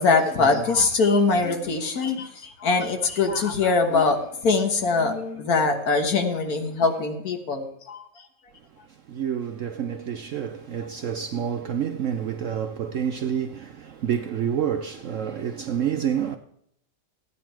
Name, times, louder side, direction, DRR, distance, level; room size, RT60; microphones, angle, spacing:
voice 1, 0.0-8.0, left 4 dB, 60° left, 1.7 m, -22 dB
voice 2, 8.8-16.4, right 8 dB, 60° right, 0.8 m, -28 dB
14.5 x 9.3 x 4.5 m
omnidirectional pair, 1.8 m